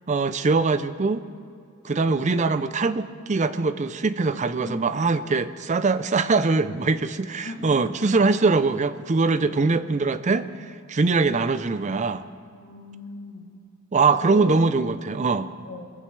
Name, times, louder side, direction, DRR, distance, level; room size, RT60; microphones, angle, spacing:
voice 1, 0.1-1.2 1.8-12.2 13.9-15.5, right 4 dB, 35° right, 12 dB, 0.5 m, -22 dB
voice 2, 1.9-2.4 4.6-5.2 7.4-8.2 9.4-9.8 12.5-13.5 14.0-14.7 15.6-15.8, left 1 dB, 65° left, -4 dB, 2.9 m, -38 dB
22.0 x 15.0 x 3.3 m, 2.3 s
head